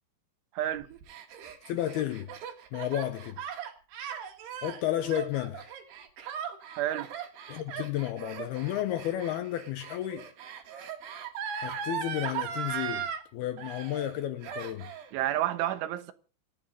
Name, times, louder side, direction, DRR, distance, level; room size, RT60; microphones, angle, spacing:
voice 1, 0.6-0.9 6.8-7.1 15.1-16.1, right 13 dB, 85° right, 3.6 m, -30 dB
Gasp, 0.8-13.2 13.6-14.2 14.4-15.1, right 8 dB, 65° right, 3.8 m, -38 dB
voice 2, 1.7-2.3 2.7-3.4 4.6-5.7 7.5-10.3 11.6-14.9, left 12 dB, 75° left, 2.4 m, -32 dB
28.0 x 9.5 x 3.8 m
omnidirectional pair, 5.4 m